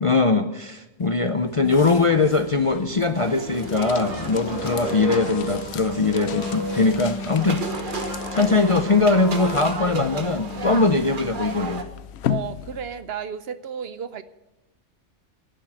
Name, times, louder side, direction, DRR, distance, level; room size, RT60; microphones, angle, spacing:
voice 1, 0.0-7.6 8.3-11.8, left 3 dB, 40° left, 7 dB, 0.5 m, -21 dB
sound 1, 1.0-13.2, left 10 dB, 70° left, 0.8 m, -37 dB
sound 2, 3.0-11.7, left 2 dB, 85° left, 2.1 m, -33 dB
sound 3, 3.1-11.8, right 4 dB, 45° right, 1.2 m, -34 dB
voice 2, 12.3-14.2, right 8 dB, 60° right, 13 dB, 0.8 m, -33 dB
11.0 x 7.5 x 8.9 m, 1.0 s
omnidirectional pair, 1.2 m